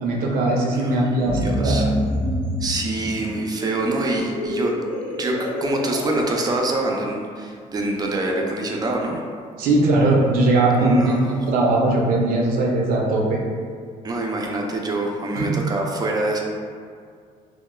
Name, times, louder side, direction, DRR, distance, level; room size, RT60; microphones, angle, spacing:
voice 1, 0.0-1.9 9.6-13.4 15.3-15.5, right 2 dB, 85° right, -2 dB, 0.5 m, -19 dB
voice 2, 0.7-1.9 2.6-4.7 5.2-9.2 10.7-11.2 14.0-16.4, right 2 dB, 25° right, 0 dB, 0.3 m, -25 dB
sound 1, 1.2-6.3, equal, 80° left, 0.7 m, -27 dB
3.0 x 2.1 x 2.2 m, 2.1 s
cardioid pair, 115°, 15 cm